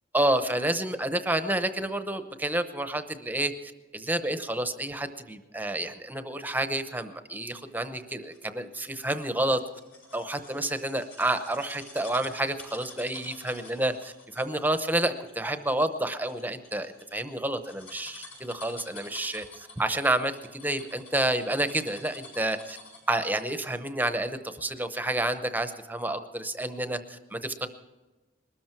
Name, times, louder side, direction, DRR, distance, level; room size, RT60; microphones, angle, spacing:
voice 1, 0.1-3.5 3.9-9.6 10.1-22.8 23.1-27.7, right 1 dB, 10° right, 9 dB, 0.8 m, -29 dB
sound 1, 8.0-23.2 23.5-23.6, left 3 dB, 80° left, 6.5 m, -49 dB
21.0 x 13.5 x 4.6 m, 1.1 s
head